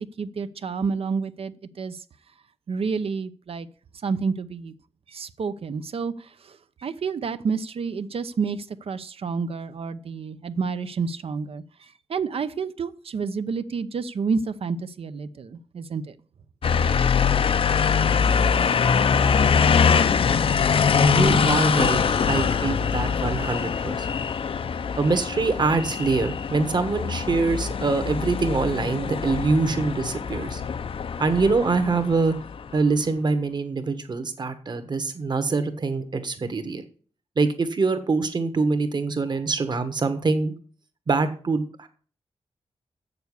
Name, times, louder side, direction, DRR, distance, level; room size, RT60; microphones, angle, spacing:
voice 1, 0.0-2.0 2.7-3.7 4.0-4.7 5.1-16.1 20.0-20.1, right 5 dB, 60° right, 12 dB, 0.7 m, -29 dB
sound 1, 16.6-32.8, left 6 dB, 55° left, 0.6 m, -23 dB
voice 2, 21.0-22.0 22.3-24.1 25.0-30.6 31.2-32.3 32.7-36.8 37.3-40.5 41.1-41.9, right 4 dB, 45° right, 9 dB, 1.4 m, -24 dB
8.2 x 6.9 x 8.2 m, 0.43 s
wide cardioid pair, 140°, 11 cm